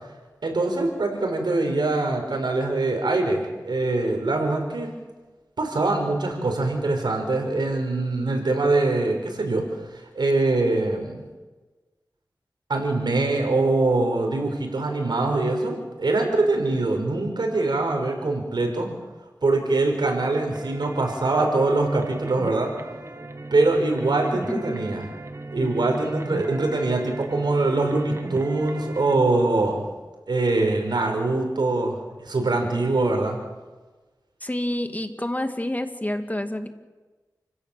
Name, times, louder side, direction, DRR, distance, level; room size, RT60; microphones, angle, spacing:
voice 1, 0.4-4.9 5.6-11.2 12.7-18.9 19.4-22.7 23.5-25.1 25.5-29.8 30.3-33.4, right 2 dB, 85° right, 3 dB, 5.1 m, -23 dB
sound 1, 20.5-29.2, right 2 dB, 40° right, 2.0 m, -36 dB
voice 2, 24.3-24.8 25.6-25.7 34.4-36.7, left 1 dB, 20° left, 7 dB, 2.0 m, -29 dB
29.5 x 16.5 x 7.5 m, 1.3 s
wide cardioid pair, 50°, 7 cm